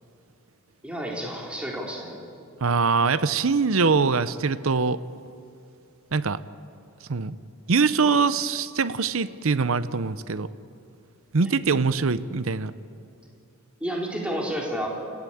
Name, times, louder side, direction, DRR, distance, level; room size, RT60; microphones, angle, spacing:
voice 1, 0.8-2.4 11.4-11.5 13.8-14.9, equal, 5° right, -2 dB, 3.5 m, -31 dB
voice 2, 2.6-5.0 6.1-6.4 7.1-7.4 7.7-10.5 11.3-12.7, right 4 dB, 65° right, 14 dB, 0.7 m, -23 dB
29.0 x 15.5 x 8.7 m, 2.4 s
head